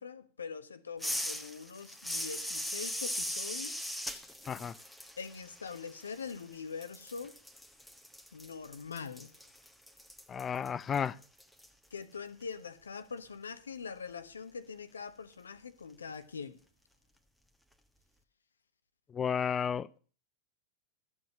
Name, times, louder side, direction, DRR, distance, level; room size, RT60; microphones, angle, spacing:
voice 1, 0.0-4.0 5.2-7.3 8.3-9.3 11.9-16.6, left 5 dB, 70° left, 1.0 m, -43 dB
sound 1, 1.0-6.5 6.8-11.7, equal, ahead, 1.3 m, -40 dB
voice 2, 10.3-11.2 19.1-20.0, left 7 dB, 20° left, 0.5 m, -32 dB
13.5 x 7.4 x 6.4 m
figure-of-eight pair, 90°, 0 cm